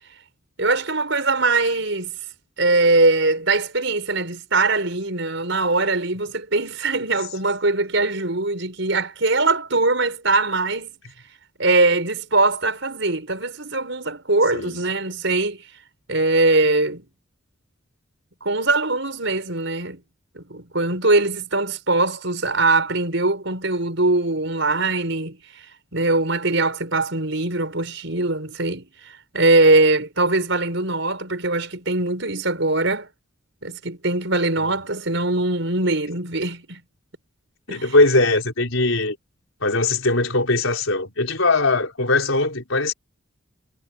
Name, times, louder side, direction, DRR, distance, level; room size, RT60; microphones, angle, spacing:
voice 1, 0.6-2.1 2.6-11.0 11.6-15.6 16.1-17.1 18.4-20.0 20.4-25.4 25.9-28.9 29.3-33.1 33.6-36.8 37.7-37.9, right 2 dB, 65° right, 5.8 m, -21 dB
voice 2, 37.7-39.2 39.6-42.9, left 2 dB, 80° left, 4.3 m, -20 dB
head